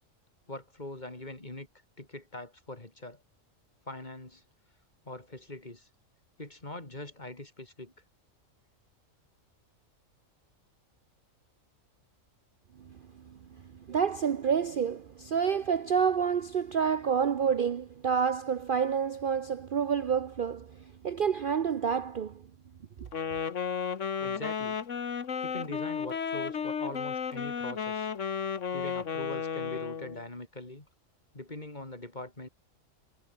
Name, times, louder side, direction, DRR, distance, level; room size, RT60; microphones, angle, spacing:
voice 1, 0.5-1.7 2.0-3.2 3.9-4.4 5.1-5.9 6.4-7.9 24.2-24.8 25.4-28.1 28.7-30.9 31.3-32.5, left 2 dB, 35° left, 3.6 m, -42 dB
voice 2, 13.9-20.8 21.0-22.4 23.0-23.1, right 7 dB, 50° right, 0.8 m, -28 dB
Wind instrument woodwind instrument, 23.1-30.2, left 6 dB, 65° left, 1.7 m, -33 dB
omnidirectional pair, 1.4 m